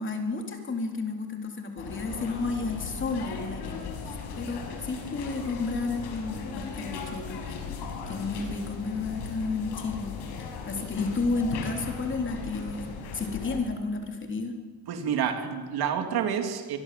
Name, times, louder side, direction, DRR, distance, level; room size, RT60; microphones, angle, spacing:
voice 1, 0.0-10.1 10.7-12.8 13.1-14.6, left 3 dB, 30° left, 3 dB, 3.6 m, -32 dB
sound 1, 1.8-13.6, left 5 dB, 85° left, 6.2 m, -37 dB
voice 2, 14.9-16.8, right 8 dB, 70° right, 5 dB, 3.3 m, -28 dB
24.0 x 22.5 x 7.8 m, 1.4 s
cardioid pair, 145°, 39 cm